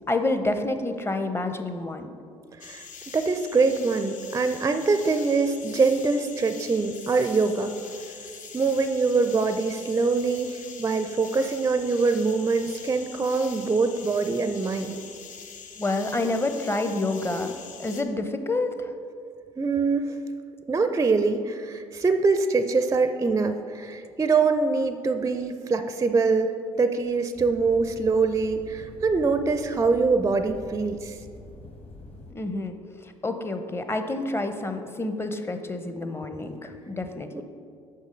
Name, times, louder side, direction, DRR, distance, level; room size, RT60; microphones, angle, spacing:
voice 1, 0.1-2.1 15.8-17.5 17.8-18.9 32.3-32.7 33.0-37.4, left 2 dB, 15° left, 7 dB, 0.7 m, -28 dB
sound 1, 2.6-18.0, left 6 dB, 55° left, 0.8 m, -44 dB
voice 2, 3.1-7.7 8.5-15.0 19.6-20.2 20.7-31.2 37.3-37.4, right 4 dB, 20° right, 9 dB, 0.4 m, -24 dB
sound 2, 27.3-32.3, left 2 dB, 40° left, 1.4 m, -45 dB
6.5 x 5.2 x 5.1 m, 2.3 s
hypercardioid pair, 60°, 15 cm